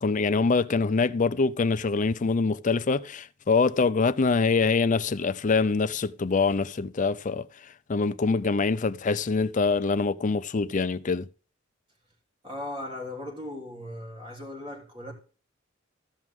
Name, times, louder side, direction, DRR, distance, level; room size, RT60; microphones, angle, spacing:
voice 1, 0.0-7.5 7.9-11.3, left 4 dB, 40° left, 0.5 m, -24 dB
voice 2, 12.4-15.1, left 1 dB, 30° right, 3.3 m, -37 dB
14.5 x 6.1 x 3.6 m
head